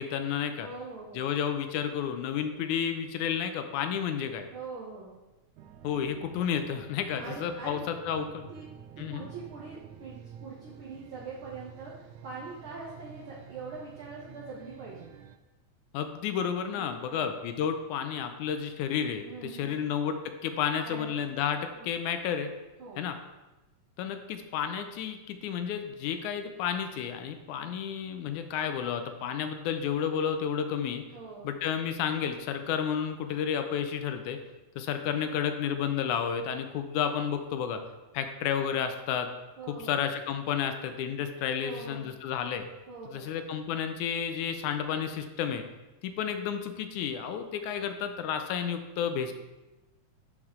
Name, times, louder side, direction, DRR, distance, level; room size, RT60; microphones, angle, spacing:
voice 1, 0.0-0.7 1.2-4.5 5.8-8.5 9.0-9.3 15.9-22.5 23.0-23.1 24.0-31.0 31.4-34.4 34.8-37.8 38.1-39.3 39.8-42.7 43.1-45.6 46.0-49.3, left 8 dB, 85° left, 7 dB, 2.1 m, -31 dB
voice 2, 0.6-1.3 4.5-5.1 7.2-7.8 8.5-8.7 9.0-15.1 16.7-17.3 19.3-19.8 20.8-21.3 21.7-21.9 22.8-23.1 31.1-31.5 39.6-40.0 41.6-42.1 42.9-43.3, right 4 dB, 55° right, -6 dB, 1.6 m, -43 dB
sound 1, 5.6-15.4, right 8 dB, 85° right, 2.0 m, -49 dB
11.5 x 4.8 x 3.7 m, 1.1 s
omnidirectional pair, 3.4 m